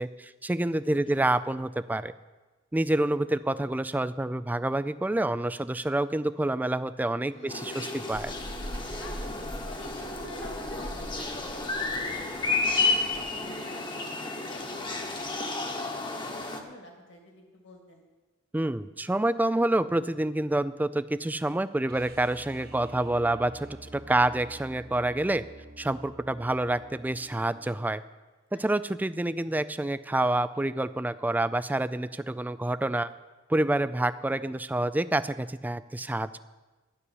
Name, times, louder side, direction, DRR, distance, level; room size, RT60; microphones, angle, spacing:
voice 1, 0.0-2.1 2.7-8.3 18.5-25.4 25.8-28.0 28.5-33.1 33.5-36.4, right 1 dB, 10° right, 14 dB, 0.3 m, -28 dB
voice 2, 0.8-1.2 7.3-7.8 9.0-14.0 14.5-18.0 28.5-28.6, left 1 dB, 65° left, 1 dB, 2.5 m, -48 dB
sound 1, 7.5-16.6, left 3 dB, 25° left, 1.1 m, -32 dB
Child speech kid speaking, 8.1-13.4, equal, 80° right, 1.5 m, -42 dB
sound 2, 21.9-27.8 30.3-30.4, right 1 dB, 50° right, 1.1 m, -49 dB
12.5 x 6.8 x 9.8 m, 1.2 s
head